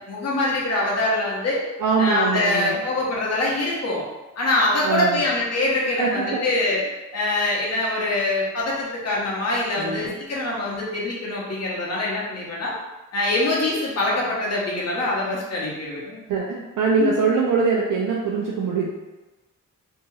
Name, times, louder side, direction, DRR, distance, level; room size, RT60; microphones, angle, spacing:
voice 1, 0.1-1.6 2.0-4.0 4.4-6.8 7.1-12.7 13.1-16.2 17.0-17.2, left 2 dB, 55° left, -4 dB, 0.8 m, -24 dB
voice 2, 1.8-2.8 4.8-5.2 6.0-6.4 9.8-10.1 16.3-18.9, right 4 dB, 85° right, -3 dB, 0.5 m, -23 dB
2.7 x 2.2 x 3.1 m, 1.1 s
wide cardioid pair, 170°, 31 cm